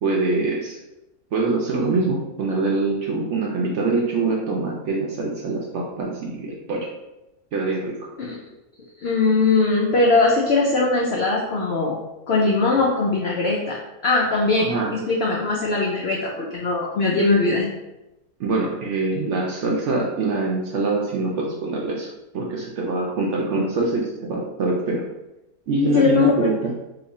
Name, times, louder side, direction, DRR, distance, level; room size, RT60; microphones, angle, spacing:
voice 1, 0.0-0.8 1.3-6.9 7.5-8.1 14.7-14.9 18.4-25.0 25.7-26.7, right 2 dB, 65° right, -2 dB, 0.7 m, -24 dB
voice 2, 9.0-12.0 12.3-17.7 25.9-26.3, left 3 dB, 90° left, -2 dB, 0.5 m, -20 dB
2.9 x 2.4 x 3.9 m, 0.96 s
omnidirectional pair, 1.7 m